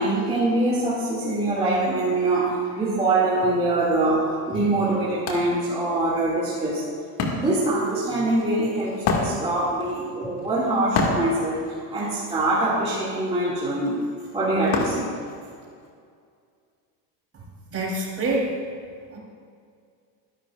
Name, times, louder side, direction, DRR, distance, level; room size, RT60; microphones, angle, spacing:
voice 1, 0.0-6.9 7.3-11.6 11.9-14.0 14.3-15.1, right 2 dB, 15° right, -8 dB, 2.5 m, -24 dB
Wood, 4.2-4.3 4.7-15.9, left 3 dB, 55° left, 2.2 m, -31 dB
voice 2, 17.7-18.5 19.1-19.2, right 2 dB, 30° right, -3 dB, 3.7 m, -26 dB
22.0 x 11.5 x 2.5 m, 2.2 s
cardioid pair, 140°, 45 cm